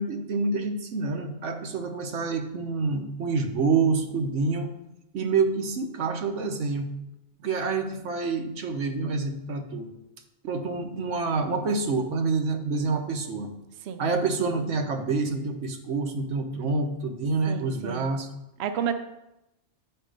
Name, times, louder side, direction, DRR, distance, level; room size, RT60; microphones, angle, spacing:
voice 1, 0.0-4.7 5.1-6.9 7.4-9.9 10.4-13.5 14.0-18.3, right 4 dB, 85° right, 6 dB, 1.2 m, -27 dB
voice 2, 17.5-18.1 18.6-18.9, right 8 dB, 65° right, 8 dB, 0.8 m, -30 dB
8.8 x 4.6 x 5.1 m, 0.89 s
omnidirectional pair, 1.2 m